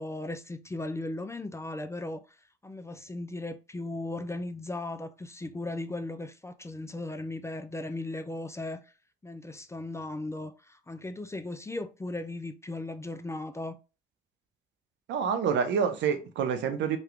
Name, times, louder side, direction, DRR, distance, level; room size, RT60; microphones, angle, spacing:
voice 1, 0.0-8.9 9.2-13.8, left 2 dB, 15° left, 0.4 m, -37 dB
voice 2, 15.1-17.0, right 7 dB, 65° right, 0.6 m, -27 dB
3.0 x 2.2 x 3.3 m
hypercardioid pair, 45°, 20 cm